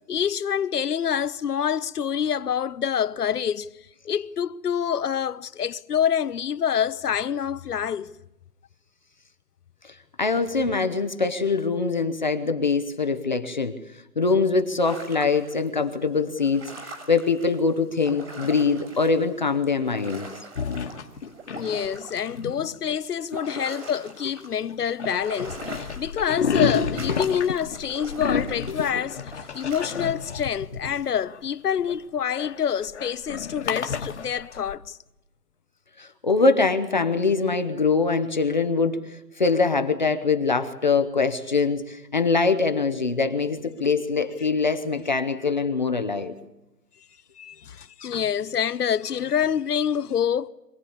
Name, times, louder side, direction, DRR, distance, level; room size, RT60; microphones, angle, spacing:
voice 1, 0.0-3.7 4.0-8.1 21.5-29.2 29.5-35.0 47.4-50.5, left 8 dB, 70° left, 0.9 m, -26 dB
voice 2, 10.2-13.8 14.2-20.3 22.4-22.5 28.8-28.9 36.0-46.3, left 4 dB, 30° left, 0.9 m, -23 dB
sound 1, 14.8-15.7 16.2-19.3 19.6-24.5 24.9-30.6, right 3 dB, 45° right, 6.8 m, -42 dB
sound 2, 20.6-22.0 23.5-24.4 24.7-34.7, left 6 dB, 45° left, 1.6 m, -30 dB
24.5 x 18.5 x 8.6 m
hypercardioid pair, 175°, 48 cm